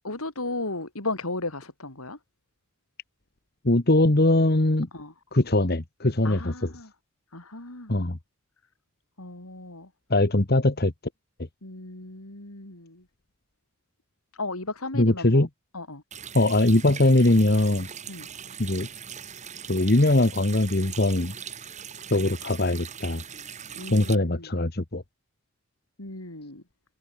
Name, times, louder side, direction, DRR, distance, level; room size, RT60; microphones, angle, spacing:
voice 1, 0.0-2.2 4.9-5.1 6.2-6.9 7.3-8.1 9.2-9.9 11.6-13.1 14.3-15.5 15.7-16.0 18.1-18.3 23.8-24.6 26.0-26.6, left 2 dB, 75° left, 4.8 m, -35 dB
voice 2, 3.6-4.9 5.3-6.7 7.9-8.2 10.1-10.9 15.0-15.5 16.3-17.9 18.6-18.9 19.7-21.3 22.1-23.2 23.9-25.0, left 1 dB, 45° left, 1.4 m, -21 dB
Water tap faucet, 16.1-24.2, right 8 dB, 30° right, 2.4 m, -41 dB
head